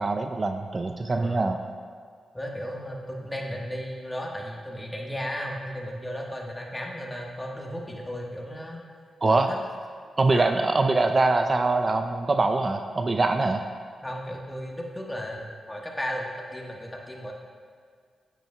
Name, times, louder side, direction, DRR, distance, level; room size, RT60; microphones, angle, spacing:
voice 1, 0.0-1.6 9.2-9.5 10.2-13.6, right 3 dB, 40° right, 6 dB, 0.4 m, -23 dB
voice 2, 1.1-1.5 2.3-8.8 9.5-9.6 10.3-10.5 14.0-17.3, equal, 15° left, -1 dB, 1.4 m, -35 dB
8.9 x 8.1 x 2.3 m, 2.1 s
supercardioid pair, 45°, 0 cm